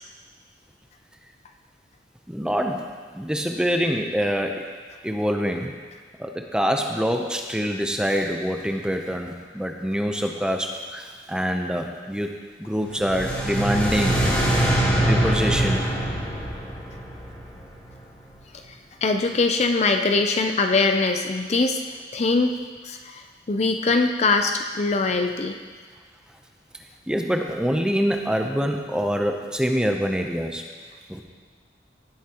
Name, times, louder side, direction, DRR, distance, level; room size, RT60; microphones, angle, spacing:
voice 1, 2.3-2.9 3.1-4.6 5.0-5.7 6.2-12.3 12.6-14.2 14.5-14.6 15.0-15.9 27.1-30.6 31.1-31.2, equal, 5° right, 3 dB, 0.6 m, -25 dB
sound 1, 12.9-18.0, right 1 dB, 10° left, 3.0 m, -23 dB
voice 2, 19.0-21.8 22.1-22.5 22.8-25.5, left 3 dB, 35° left, 5 dB, 0.5 m, -22 dB
16.5 x 8.2 x 2.9 m, 1.6 s
head